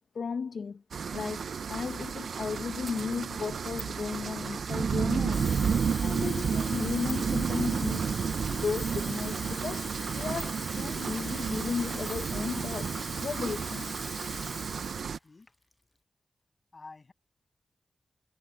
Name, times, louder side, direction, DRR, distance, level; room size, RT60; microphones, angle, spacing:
voice 1, 0.1-0.8 1.1-5.5 6.0-8.1 8.5-13.9, left 5 dB, 80° left, 0.7 m, -35 dB
sound 1, 0.9-15.2, right 6 dB, 85° right, 0.4 m, -32 dB
sound 2, 3.8-6.7 7.1-10.0 10.4-12.4, right 1 dB, 10° right, 2.2 m, -51 dB
Water tap faucet / Fill (with liquid), 5.2-15.1 15.5-15.7, left 1 dB, 20° left, 0.3 m, -42 dB
voice 2, 14.8-15.5 16.7-17.1, left 3 dB, 50° left, 7.4 m, -50 dB
cardioid pair, 55°, 0 cm